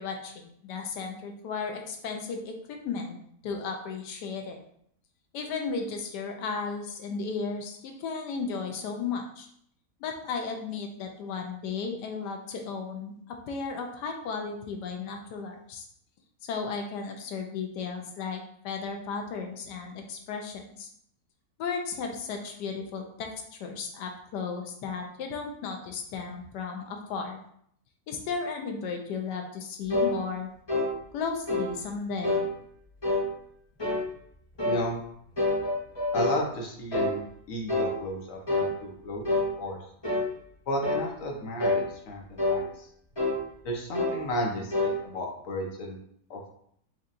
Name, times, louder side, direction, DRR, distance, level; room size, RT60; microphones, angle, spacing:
voice 1, 0.0-3.2 3.4-4.6 5.3-9.5 10.0-15.8 16.4-20.9 21.6-27.4 28.1-30.5 31.1-32.5, left 5 dB, 85° left, 3 dB, 1.3 m, -35 dB
sound 1, 29.9-30.1 30.7-30.9 31.5-31.7 32.2-32.5 33.0-33.3 33.8-34.1 34.6-34.8 35.4-36.4 36.9-37.2 37.7-37.9 38.5-38.7 39.2-39.5 40.0-40.3 40.8-41.1 41.6-41.8 42.4-42.6 43.2-43.4 43.9-44.2 44.7-44.9, left 2 dB, 20° left, 1.0 m, -26 dB
voice 2, 34.6-35.0 36.1-39.8 40.7-42.9 43.6-46.0 46.3-46.4, equal, 60° left, 0 dB, 1.0 m, -33 dB
4.7 x 2.8 x 2.5 m, 0.67 s
omnidirectional pair, 1.8 m